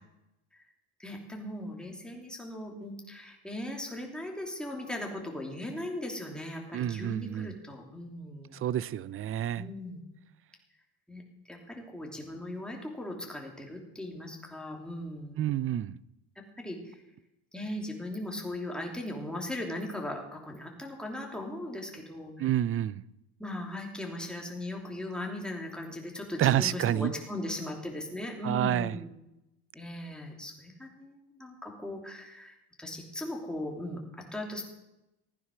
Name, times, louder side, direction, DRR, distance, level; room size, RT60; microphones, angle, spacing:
voice 1, 1.0-8.6 9.5-10.0 11.1-15.4 16.3-17.0 17.5-22.5 23.4-29.1 29.7-34.6, left 1 dB, ahead, 3.0 m, -38 dB
voice 2, 6.7-7.5 8.5-9.6 15.4-16.0 22.4-23.0 26.4-27.1 28.4-29.0, right 11 dB, 35° right, 0.5 m, -28 dB
15.5 x 9.6 x 6.2 m
cardioid pair, 120°, 41 cm